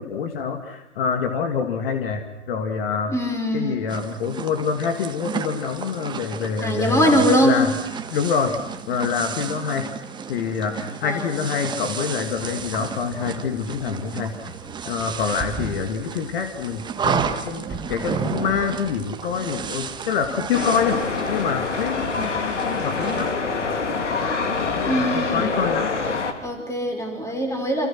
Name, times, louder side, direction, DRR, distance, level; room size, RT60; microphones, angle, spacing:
voice 1, 0.0-3.1 3.5-7.8 8.1-8.6 8.9-9.9 10.3-14.5 14.9-21.0 21.3-23.3 24.7-25.9, left 6 dB, 50° left, 6 dB, 2.5 m, -26 dB
voice 2, 3.1-3.7 6.6-7.6 11.0-11.4 24.8-25.5 26.4-27.9, equal, 10° left, 4 dB, 5.8 m, -22 dB
sound 1, 3.9-23.3, right 6 dB, 10° right, 1.7 m, -32 dB
sound 2, 20.5-26.3, left 4 dB, 75° left, 3.4 m, -25 dB
29.0 x 27.5 x 6.2 m, 0.94 s
figure-of-eight pair, 120°, 37 cm